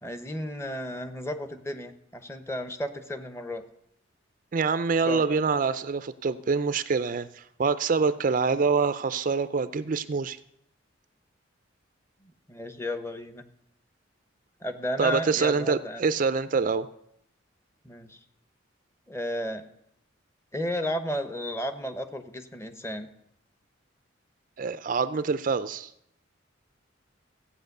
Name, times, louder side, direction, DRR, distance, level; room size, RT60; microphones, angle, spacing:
voice 1, 0.0-3.6 5.0-5.4 12.5-13.4 14.6-16.0 17.8-18.2 19.1-19.6 20.5-23.1, left 1 dB, 15° left, 9 dB, 0.9 m, -33 dB
voice 2, 4.5-10.4 15.0-16.9 24.6-25.9, right 5 dB, 40° right, 13 dB, 0.4 m, -25 dB
15.0 x 8.7 x 6.6 m, 0.76 s
head